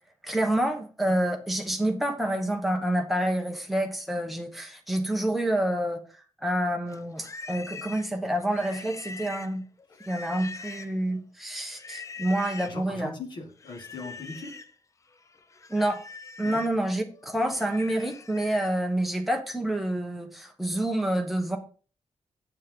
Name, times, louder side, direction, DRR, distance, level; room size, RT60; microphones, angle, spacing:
voice 1, 0.2-6.0 6.4-9.6 10.1-13.1 15.7-16.0 16.4-21.6, right 1 dB, ahead, 2 dB, 1.2 m, -28 dB
Livestock farm animals working animals, 6.9-11.1 11.7-12.8 13.6-14.7 15.1-18.8, left 4 dB, 30° left, 0.5 m, -43 dB
voice 2, 12.6-14.6 16.4-16.6, left 3 dB, 45° left, 3 dB, 1.7 m, -39 dB
8.3 x 7.4 x 3.8 m, 0.38 s
wide cardioid pair, 180°, 11 cm